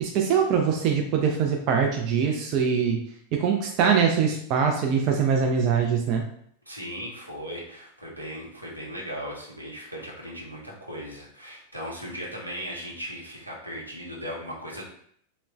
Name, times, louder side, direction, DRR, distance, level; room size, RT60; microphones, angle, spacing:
voice 1, 0.0-3.0 3.3-6.2, right 6 dB, 40° right, 2 dB, 0.3 m, -23 dB
voice 2, 6.7-14.9, equal, 85° right, -4 dB, 0.7 m, -37 dB
2.9 x 2.0 x 2.4 m, 0.65 s
figure-of-eight pair, 90°, 0 cm